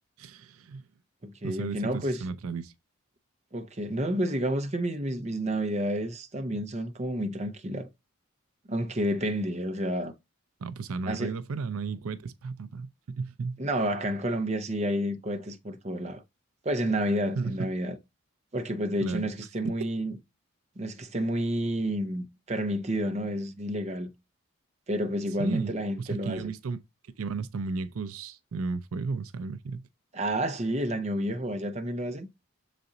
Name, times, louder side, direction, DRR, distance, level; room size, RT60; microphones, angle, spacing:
voice 1, 0.2-0.9 1.4-2.7 10.6-13.6 17.4-17.7 19.0-19.3 19.8-19.9 25.4-25.7 26.0-26.8 27.2-29.9, right 4 dB, 85° right, 0.5 m, -34 dB
voice 2, 1.2-2.2 3.5-7.9 8.7-10.1 11.1-11.3 13.6-16.2 16.6-18.0 18.5-20.1 20.8-24.1 24.9-26.5 30.1-32.3, right 1 dB, 30° right, 0.8 m, -30 dB
6.8 x 4.1 x 3.8 m
head